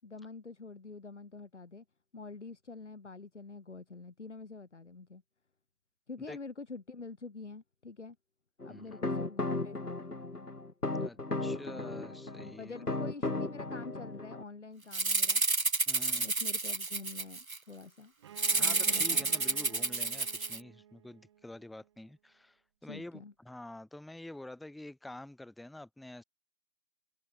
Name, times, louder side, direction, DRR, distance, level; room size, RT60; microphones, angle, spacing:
voice 1, 0.0-1.8 2.1-5.2 6.1-8.2 8.6-10.5 12.6-15.4 16.1-18.1 18.6-19.3 22.8-23.3, left 4 dB, 50° left, 6.2 m, -46 dB
sound 1, 8.6-14.4, left 2 dB, 90° left, 3.1 m, -36 dB
voice 2, 11.0-12.7 15.9-16.3 18.5-26.2, left 1 dB, ahead, 1.0 m, -47 dB
Rattle (instrument), 14.9-17.6 18.4-20.6, right 3 dB, 65° right, 3.8 m, -30 dB
Bowed string instrument, 18.2-21.9, right 10 dB, 20° right, 6.5 m, -51 dB
figure-of-eight pair, 160°, 45 cm